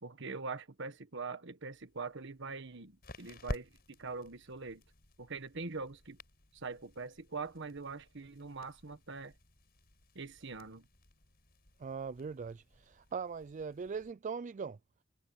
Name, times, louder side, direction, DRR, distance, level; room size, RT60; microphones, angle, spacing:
voice 1, 0.0-4.8 5.2-6.2 6.5-9.3 10.1-10.9, right 4 dB, 65° right, 1.4 m, -43 dB
sound 1, 1.7-14.1, left 1 dB, 50° left, 5.6 m, -51 dB
voice 2, 11.8-14.8, right 5 dB, 40° right, 0.4 m, -40 dB
head